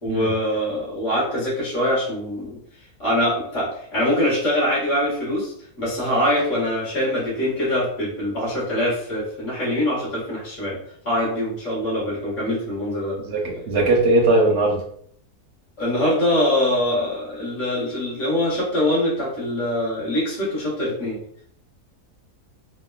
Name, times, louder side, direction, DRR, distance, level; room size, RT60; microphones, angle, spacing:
voice 1, 0.0-2.6 3.0-10.8 11.0-13.2 15.8-21.2, left 1 dB, 50° left, -9 dB, 2.0 m, -23 dB
voice 2, 13.2-14.8, right 2 dB, 55° right, -1 dB, 0.9 m, -19 dB
3.9 x 2.2 x 2.3 m, 0.64 s
omnidirectional pair, 1.6 m